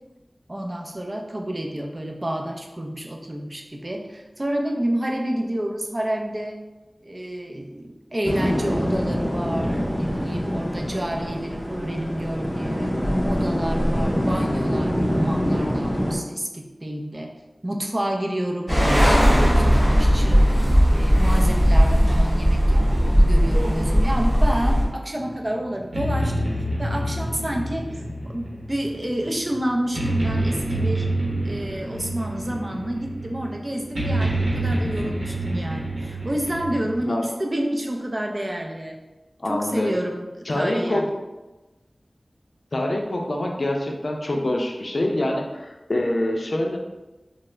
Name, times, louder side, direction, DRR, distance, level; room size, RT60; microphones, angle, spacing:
voice 1, 0.5-6.6 7.0-12.9 13.2-17.3 17.6-19.2 19.5-20.5 20.9-26.5 26.8-28.0 28.3-31.1 31.4-39.0 39.4-40.3 40.5-41.1, right 1 dB, 35° right, 1 dB, 0.4 m, -29 dB
sound 1, 8.2-16.2, equal, 15° left, 0.6 m, -25 dB
sound 2, 18.7-24.8, equal, 5° right, 1.3 m, -17 dB
sound 3, 25.1-37.0, right 1 dB, 80° right, 0.8 m, -27 dB
voice 2, 39.4-40.0 40.5-41.0 42.7-46.8, left 1 dB, 65° left, 1 dB, 0.4 m, -25 dB
3.4 x 2.0 x 3.2 m, 1.1 s
wide cardioid pair, 55°, 0 cm